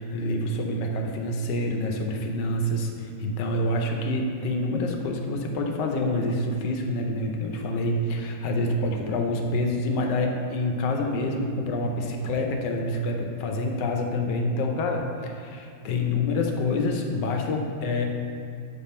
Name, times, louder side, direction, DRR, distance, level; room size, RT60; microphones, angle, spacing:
voice 1, 0.0-18.1, left 1 dB, 90° left, 2 dB, 1.3 m, -27 dB
5.4 x 4.6 x 4.2 m, 2.4 s
omnidirectional pair, 1.8 m